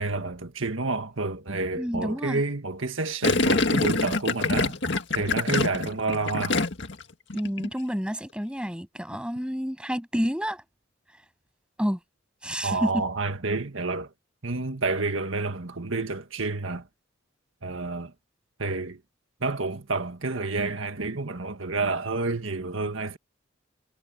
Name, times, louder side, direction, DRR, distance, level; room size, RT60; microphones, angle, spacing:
voice 1, 0.0-4.8 5.1-6.6 12.6-14.1 14.4-16.8 17.6-18.1 18.6-19.0 19.4-23.2, right 3 dB, 80° right, 1.7 m, -29 dB
voice 2, 1.8-2.4 7.3-10.6 11.8-12.0 12.4-13.0, equal, 5° right, 7.9 m, -29 dB
Gurgling, 3.2-7.0 7.3-7.7, left 3 dB, 60° left, 2.0 m, -25 dB
head